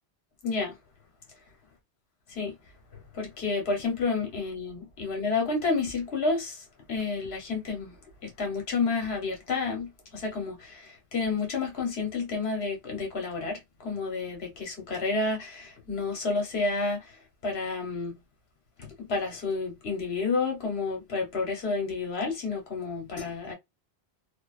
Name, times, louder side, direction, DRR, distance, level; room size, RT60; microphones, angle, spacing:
voice 1, 0.4-0.7 2.3-2.5 3.1-6.6 6.9-7.9 8.2-17.0 17.4-18.1 18.8-23.5, left 4 dB, 70° left, 1.2 m, -30 dB
2.7 x 2.0 x 2.3 m
omnidirectional pair, 1.1 m